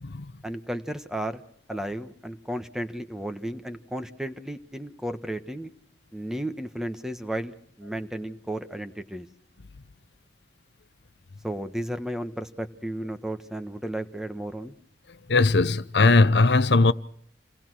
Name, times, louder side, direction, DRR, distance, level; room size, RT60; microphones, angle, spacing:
voice 1, 0.4-1.4 1.7-5.7 6.1-9.3 11.4-14.7, right 1 dB, 5° right, 1.4 m, -33 dB
voice 2, 15.3-16.9, left 3 dB, 75° left, 0.8 m, -19 dB
28.5 x 19.5 x 6.3 m
head